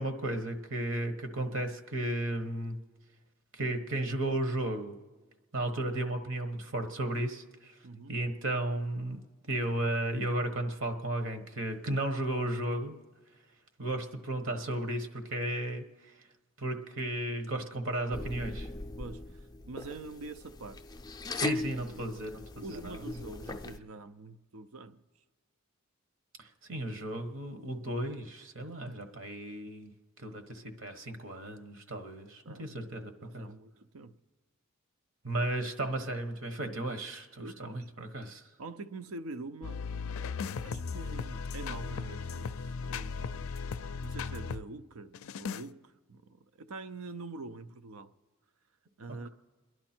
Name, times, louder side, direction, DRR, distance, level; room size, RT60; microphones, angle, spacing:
voice 1, 0.0-2.8 3.5-5.0 5.5-7.8 8.1-13.0 13.8-15.8 16.6-18.7 21.3-23.0 26.4-29.9 30.2-33.5 35.2-38.4, right 1 dB, 65° right, 1.2 m, -34 dB
voice 2, 7.8-8.2 19.0-20.8 21.9-22.0 22.6-25.0 32.4-32.8 33.2-34.1 37.4-37.9 38.6-39.8 40.6-42.5 42.9-43.8 44.0-48.1 49.0-49.3, right 3 dB, 90° right, 0.6 m, -45 dB
sound 1, 18.1-23.8, left 3 dB, 20° left, 0.4 m, -39 dB
sound 2, 39.6-44.6 45.1-45.6, left 5 dB, 80° left, 0.4 m, -37 dB
28.5 x 11.0 x 4.4 m
head